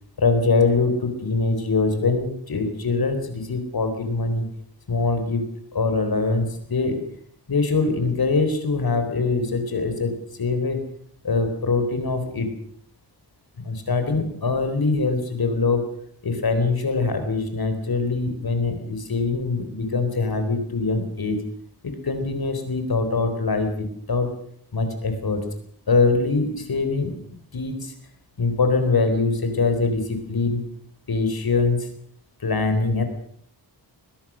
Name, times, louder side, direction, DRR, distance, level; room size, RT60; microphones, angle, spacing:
voice 1, 0.2-4.5 4.9-7.0 7.5-10.1 10.4-10.9 11.2-12.5 13.6-15.9 16.2-21.4 21.8-24.3 24.7-25.4 25.9-27.1 27.5-27.9 28.4-30.6 31.1-31.9 32.4-33.0, left 3 dB, 55° left, 7 dB, 4.2 m, -23 dB
21.5 x 20.5 x 6.4 m, 0.63 s
wide cardioid pair, 140°, 43 cm